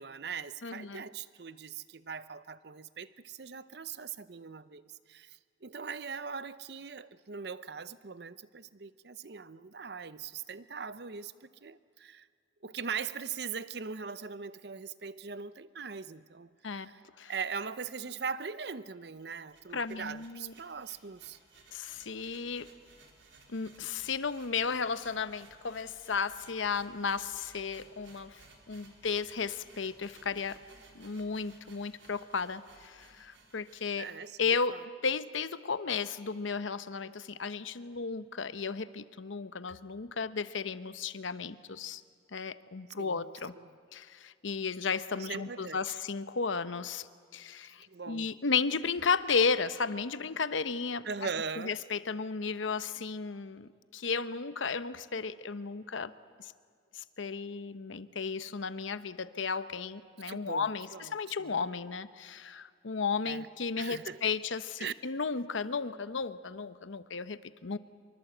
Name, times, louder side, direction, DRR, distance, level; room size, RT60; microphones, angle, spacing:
voice 1, 0.0-12.3 12.6-21.4 34.0-34.8 43.0-43.7 45.1-45.8 47.9-48.3 51.0-51.8 60.2-61.5 63.2-63.5 63.8-64.2 64.8-64.9, right 5 dB, 60° right, 0.7 m, -41 dB
voice 2, 0.6-1.0 16.6-16.9 17.2-17.3 19.7-20.5 21.7-22.7 23.5-28.4 28.7-30.6 30.9-34.1 34.4-34.8 35.0-42.0 42.3-43.5 43.9-47.1 47.3-51.1 51.6-56.1 56.9-67.8, left 5 dB, 85° left, 0.9 m, -34 dB
sound 1, 19.2-34.2, right 3 dB, 75° right, 4.0 m, -59 dB
25.5 x 23.5 x 7.9 m
head